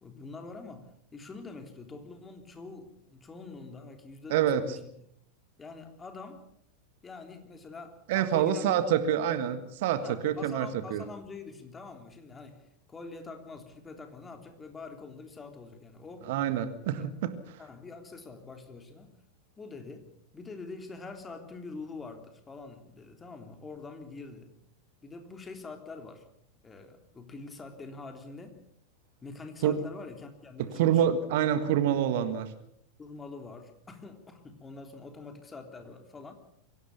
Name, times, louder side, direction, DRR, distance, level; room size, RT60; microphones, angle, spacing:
voice 1, 0.0-4.9 5.6-6.4 7.0-9.0 9.4-9.7 10.0-16.3 16.8-17.1 17.6-19.2 19.6-20.1 20.3-24.5 25.0-26.3 26.6-28.6 29.2-31.2 33.0-36.3, left 4 dB, 15° left, 5 dB, 3.4 m, -45 dB
voice 2, 4.3-4.6 8.1-11.0 16.3-17.6 29.6-29.8 30.7-32.5, right 10 dB, 50° right, 12 dB, 1.6 m, -27 dB
23.5 x 17.5 x 7.0 m, 0.71 s
figure-of-eight pair, 90°, 0 cm